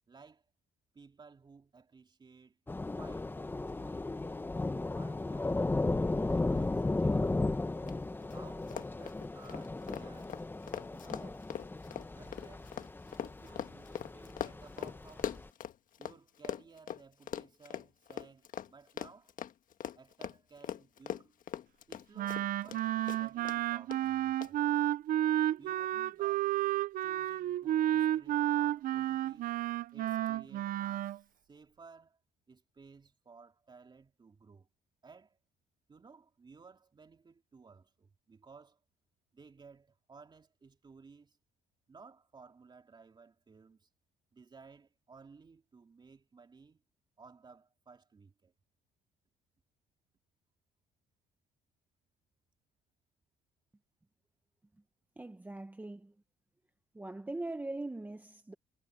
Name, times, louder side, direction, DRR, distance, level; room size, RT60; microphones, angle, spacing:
voice 1, 0.1-0.5 0.9-2.6 2.9-4.4 4.9-5.6 6.0-7.4 8.3-10.4 10.9-11.5 12.1-12.8 13.2-15.4 16.0-19.3 19.9-21.4 21.9-24.6 25.6-26.6 27.0-29.6 29.9-32.2 32.5-34.7 35.0-35.4 35.9-38.8 39.3-41.4 41.9-43.9 44.3-46.8 47.2-48.5, right 4 dB, 25° right, 3.2 m, -57 dB
Thunder / Rain, 2.7-15.5, left 2 dB, 10° left, 1.0 m, -35 dB
Run, 7.9-8.0 8.2-8.4 8.6-16.2 16.4-22.8 23.1-23.6 23.9-24.0 24.4-24.5, left 10 dB, 50° left, 1.5 m, -41 dB
Wind instrument woodwind instrument, 22.2-31.2, right 13 dB, 55° right, 0.5 m, -31 dB
voice 2, 55.2-56.1 56.9-58.5, right 2 dB, 10° right, 1.0 m, -41 dB
cardioid pair, 110°, 17 cm